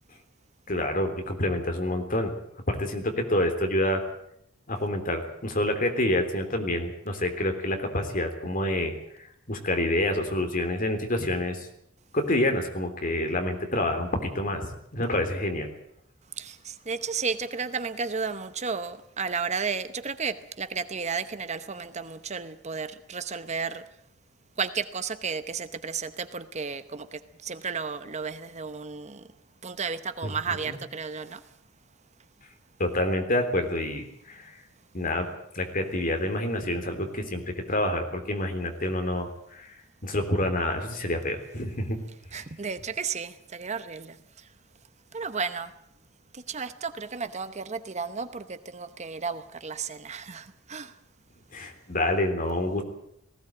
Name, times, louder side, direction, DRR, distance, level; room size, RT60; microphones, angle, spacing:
voice 1, 0.7-2.3 2.7-4.0 4.7-8.9 9.5-11.7 12.1-15.7 30.2-30.3 30.6-30.8 32.8-34.5 34.9-35.3 35.5-39.7 40.0-42.0 51.5-52.8, left 1 dB, 40° left, 5 dB, 3.5 m, -27 dB
voice 2, 16.4-23.8 24.6-29.2 29.6-31.4 42.3-44.1 45.1-45.7 46.5-50.9, right 5 dB, 35° right, 11 dB, 0.9 m, -33 dB
19.0 x 16.5 x 8.9 m, 0.74 s
head